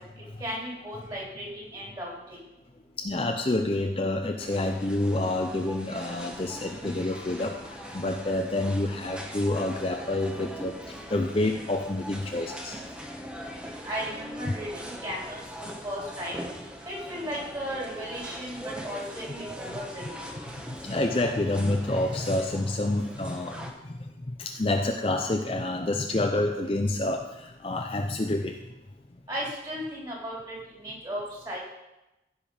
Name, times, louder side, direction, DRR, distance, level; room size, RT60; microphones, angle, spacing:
voice 1, 0.4-2.4 13.6-15.4 15.8-16.3 16.8-19.3 19.5-20.2 29.3-31.6, equal, 25° right, -5 dB, 3.3 m, -36 dB
voice 2, 3.0-10.8 11.1-12.8 15.6-15.8 20.7-28.6, left 2 dB, 30° left, 3 dB, 0.5 m, -28 dB
sound 1, 4.4-23.7, equal, 5° right, 1.0 m, -41 dB
15.5 x 5.2 x 5.5 m, 0.98 s
head